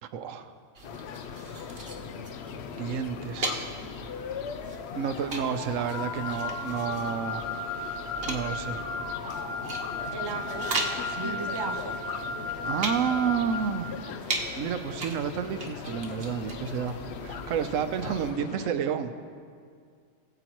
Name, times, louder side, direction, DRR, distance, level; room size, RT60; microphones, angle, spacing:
voice 1, 0.0-0.5 2.7-3.7 4.9-8.0 8.2-8.8 12.6-13.9 14.6-19.2, right 7 dB, 85° right, 9 dB, 1.0 m, -30 dB
sound 1, 0.7-18.3, right 3 dB, 50° right, 1.2 m, -39 dB
sound 2, 0.8-18.7, left 7 dB, 65° left, 0.8 m, -39 dB
Wind instrument woodwind instrument, 5.9-13.7, left 2 dB, 25° left, 0.9 m, -35 dB
voice 2, 10.1-10.7 11.2-12.0, right 5 dB, 35° right, 5 dB, 0.4 m, -35 dB
21.5 x 7.9 x 3.0 m, 2.2 s
omnidirectional pair, 1.3 m